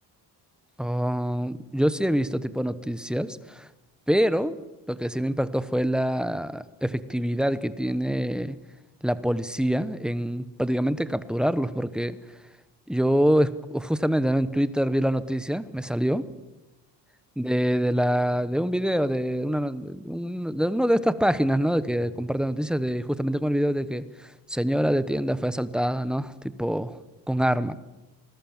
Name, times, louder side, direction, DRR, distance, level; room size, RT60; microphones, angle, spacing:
voice 1, 0.8-3.7 4.1-4.6 4.9-8.6 9.0-12.2 12.9-16.3 17.4-27.0 27.3-27.7, equal, ahead, 14 dB, 1.0 m, -25 dB
25.5 x 20.5 x 7.4 m, 1.0 s
cardioid pair, 135°, 41 cm